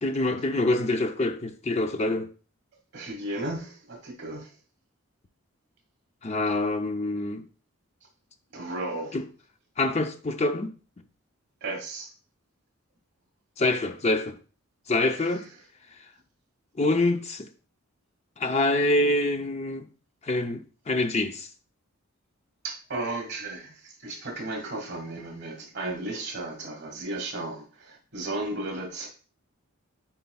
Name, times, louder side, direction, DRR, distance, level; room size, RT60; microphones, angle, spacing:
voice 1, 0.0-2.3 6.2-7.5 9.1-9.2 9.8-10.7 13.6-14.4 14.9-15.5 16.8-17.5 18.4-19.9 20.2-21.5, left 2 dB, 30° left, 0.5 m, -26 dB
voice 2, 2.9-4.5 8.5-9.1 11.6-12.1 22.6-29.1, right 2 dB, 50° right, 1.6 m, -34 dB
9.5 x 4.5 x 2.3 m
head